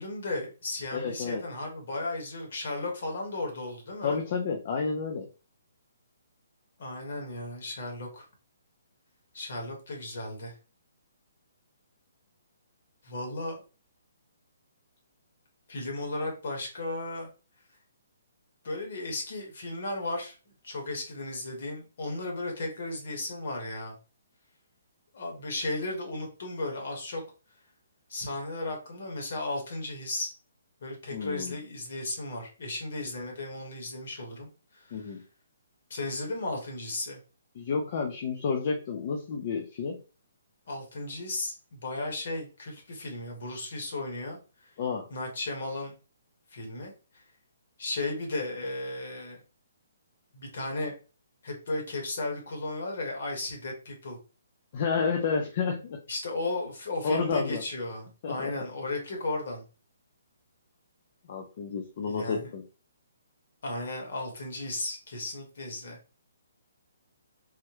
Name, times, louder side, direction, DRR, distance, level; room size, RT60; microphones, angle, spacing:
voice 1, 0.0-4.2 6.8-8.3 9.3-10.5 13.0-13.6 15.7-17.3 18.6-20.3 20.6-23.9 25.1-27.2 28.1-30.3 30.8-34.5 34.7-35.1 35.9-37.2 40.7-44.7 45.1-45.9 46.5-47.2 47.8-49.4 50.3-50.9 51.4-54.2 56.1-59.6 62.0-62.5 63.6-66.0, left 2 dB, 50° left, 1 dB, 1.2 m, -35 dB
voice 2, 0.9-1.4 4.0-5.3 31.1-31.5 34.9-35.2 37.6-40.0 44.8-45.1 54.7-56.0 57.0-57.6 58.2-58.5 61.3-62.6, left 5 dB, 30° left, 3 dB, 0.4 m, -30 dB
3.4 x 2.1 x 2.9 m, 0.34 s
hypercardioid pair, 175°, 0 cm